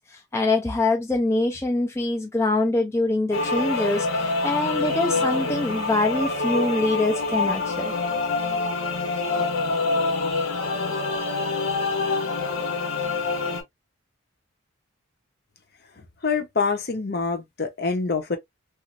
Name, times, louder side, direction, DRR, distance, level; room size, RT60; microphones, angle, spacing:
voice 1, 0.1-7.9, left 2 dB, 15° left, 0.4 m, -24 dB
sound 1, 3.3-13.6, left 3 dB, 80° left, 0.9 m, -26 dB
voice 2, 16.2-18.4, left 4 dB, 50° left, 0.7 m, -25 dB
3.0 x 2.5 x 2.5 m
head